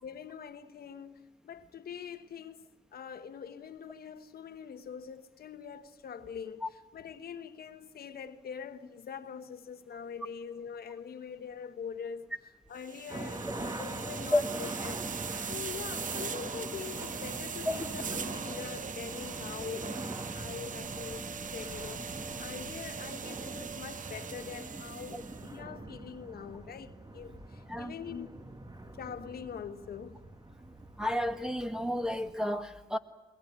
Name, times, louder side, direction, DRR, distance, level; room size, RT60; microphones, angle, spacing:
voice 1, 0.0-15.1 15.5-20.0 20.3-28.4 29.0-30.3, left 7 dB, 65° left, 1.3 m, -44 dB
sound 1, 12.8-25.5, right 6 dB, 50° right, 0.9 m, -41 dB
sound 2, 13.1-32.3, right 2 dB, 25° right, 1.8 m, -43 dB
voice 2, 31.0-33.0, left 1 dB, 5° right, 1.8 m, -31 dB
21.5 x 20.5 x 9.6 m
supercardioid pair, 55°, 17 cm